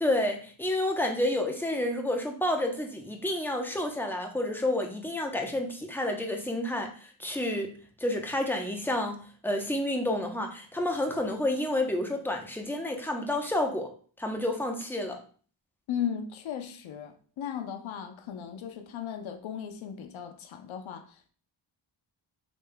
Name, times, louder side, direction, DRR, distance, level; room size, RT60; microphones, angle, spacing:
voice 1, 0.0-7.7 8.0-13.9 14.2-15.2, left 1 dB, 5° left, 0.8 m, -30 dB
voice 2, 15.9-21.3, left 8 dB, 70° left, 0.7 m, -36 dB
5.1 x 3.3 x 2.2 m
cardioid pair, 70°, 48 cm